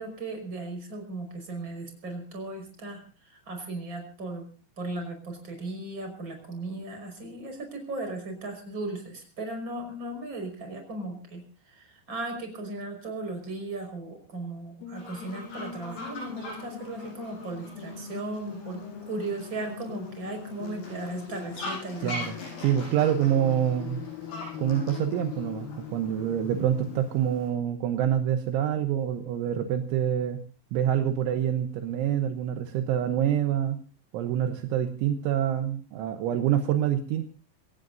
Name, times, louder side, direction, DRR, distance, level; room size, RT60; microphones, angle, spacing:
voice 1, 0.0-4.5 4.8-22.2, right 2 dB, 25° right, 5 dB, 5.6 m, -37 dB
sound 1, 14.8-27.0, left 7 dB, 65° left, 2.8 m, -41 dB
Fowl, 15.0-27.5, left 2 dB, 85° left, 8.9 m, -43 dB
voice 2, 22.0-24.0 24.6-30.4 30.7-33.8 34.1-37.3, right 10 dB, 75° right, 6 dB, 3.3 m, -26 dB
26.5 x 17.5 x 2.6 m, 0.37 s
omnidirectional pair, 5.7 m